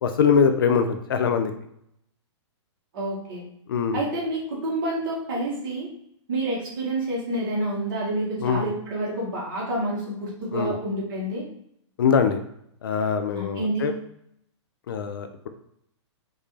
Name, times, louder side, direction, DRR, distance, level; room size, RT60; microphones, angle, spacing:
voice 1, 0.0-1.5 3.7-4.0 8.4-8.7 10.5-10.8 12.0-12.4 12.8-13.9 14.9-15.5, left 6 dB, 50° left, 7 dB, 0.4 m, -22 dB
voice 2, 2.9-3.4 3.9-5.9 6.3-11.5 13.3-13.9, right 1 dB, 45° right, -4 dB, 1.8 m, -28 dB
5.2 x 2.6 x 3.3 m, 0.73 s
hypercardioid pair, 170°, 15 cm